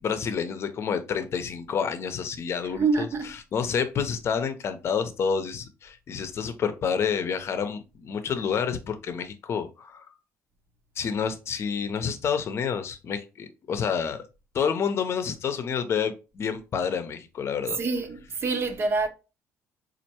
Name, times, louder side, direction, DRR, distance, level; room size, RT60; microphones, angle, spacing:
voice 1, 0.0-3.1 3.5-10.1 11.0-14.2 14.5-17.8, left 7 dB, 50° left, 0.6 m, -29 dB
voice 2, 2.8-3.3 17.8-19.1, right 4 dB, 45° right, 0.7 m, -26 dB
4.3 x 2.5 x 2.8 m
cardioid pair, 95°, 6 cm